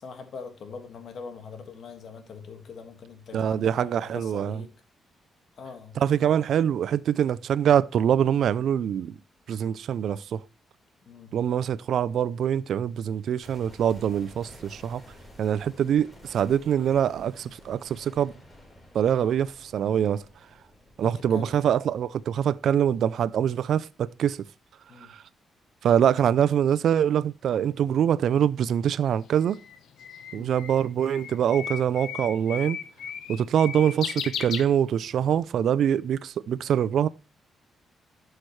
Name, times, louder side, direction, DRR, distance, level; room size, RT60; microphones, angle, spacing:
voice 1, 0.0-4.8 5.6-6.0 11.1-11.4 19.1-19.3 21.0-21.7 24.9-25.1 30.3-30.6, left 5 dB, 60° left, 1.8 m, -42 dB
voice 2, 3.3-4.6 6.0-9.2 9.5-10.4 11.3-15.0 15.4-18.3 18.9-20.2 21.0-24.4 25.1-25.2 25.8-29.6 30.3-32.8 33.3-37.1, right 9 dB, 70° right, 0.4 m, -24 dB
sound 1, 13.4-23.4 23.7-23.8, equal, 20° left, 4.4 m, -52 dB
Bird, 29.1-35.3, left 8 dB, 80° left, 0.9 m, -36 dB
11.5 x 6.5 x 3.2 m
cardioid pair, 95°, 0 cm